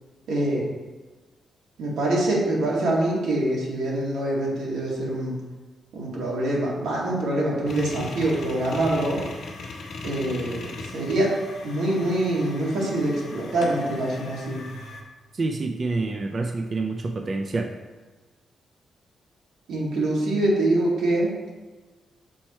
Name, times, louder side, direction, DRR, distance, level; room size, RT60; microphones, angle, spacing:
voice 1, 0.3-0.7 1.8-5.4 5.9-9.2 10.0-11.3 11.6-14.6 19.7-21.3, right 1 dB, 90° right, -4 dB, 2.0 m, -25 dB
sound 1, 7.7-15.0, left 3 dB, 65° left, 1.1 m, -39 dB
voice 2, 15.3-17.7, right 3 dB, 30° right, 4 dB, 0.4 m, -27 dB
6.3 x 4.4 x 4.3 m, 1.3 s
wide cardioid pair, 175°, 0 cm